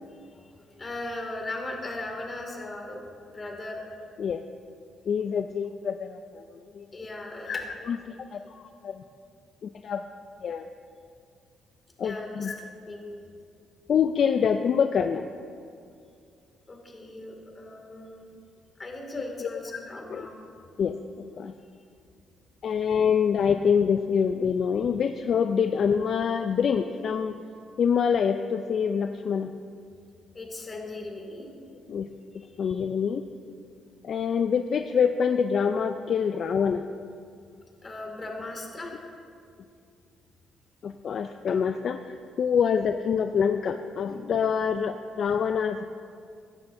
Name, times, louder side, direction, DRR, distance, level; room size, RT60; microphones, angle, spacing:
voice 1, 0.3-3.1 3.3-3.8 6.9-7.6 12.0-13.1 16.7-18.2 18.8-20.3 30.3-31.5 32.6-32.8 37.8-39.0, left 2 dB, 30° left, 1 dB, 2.2 m, -38 dB
voice 2, 5.1-6.9 7.5-9.0 9.6-10.0 10.4-10.7 12.0-12.6 13.9-15.3 19.4-19.6 20.1-20.3 20.8-21.5 22.6-27.4 27.8-29.5 31.9-32.1 32.6-33.2 34.0-36.9 40.8-45.8, left 7 dB, 55° left, 8 dB, 0.4 m, -26 dB
16.0 x 11.5 x 2.6 m, 2.3 s
cardioid pair, 90°, 0 cm